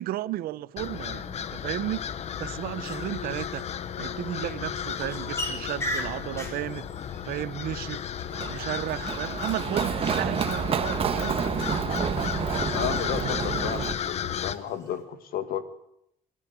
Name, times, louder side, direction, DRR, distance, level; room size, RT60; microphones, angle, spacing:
voice 1, 0.0-2.0 2.4-3.6 4.0-6.9 7.2-8.0 8.5-11.4, right 14 dB, 85° right, 0.7 m, -33 dB
sound 1, 0.8-14.6, left 8 dB, 45° left, 0.9 m, -34 dB
sound 2, 2.7-15.0, equal, 20° left, 4.4 m, -42 dB
Run, 8.3-13.9, right 7 dB, 40° right, 1.2 m, -29 dB
voice 2, 12.7-15.6, left 9 dB, 80° left, 2.0 m, -33 dB
22.5 x 13.0 x 9.1 m
cardioid pair, 160°, 15 cm